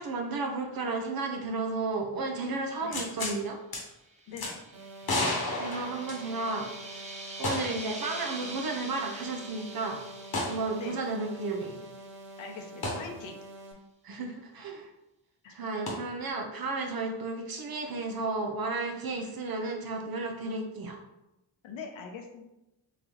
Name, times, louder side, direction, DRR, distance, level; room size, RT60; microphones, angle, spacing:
voice 1, 0.0-3.6 5.6-7.1 7.4-10.0 10.4-11.8 14.0-14.9 15.5-21.0, right 3 dB, 45° right, 2 dB, 0.6 m, -33 dB
sound 1, 2.9-3.4 3.7-3.8 4.4-4.5 5.0-6.6 7.4-7.9 8.2-8.3 10.3-10.6 12.8-13.0 15.9-16.0, left 2 dB, 45° left, 1.1 m, -31 dB
sound 2, 4.0-12.3, right 2 dB, 15° right, 0.8 m, -45 dB
voice 2, 4.3-4.6 10.8-11.0 12.4-13.4 15.4-15.6 21.6-22.4, left 5 dB, 70° left, 4 dB, 0.8 m, -42 dB
sound 3, 4.7-13.7, right 1 dB, 90° right, 0.7 m, -47 dB
3.9 x 2.3 x 2.9 m, 0.93 s
supercardioid pair, 45°, 50 cm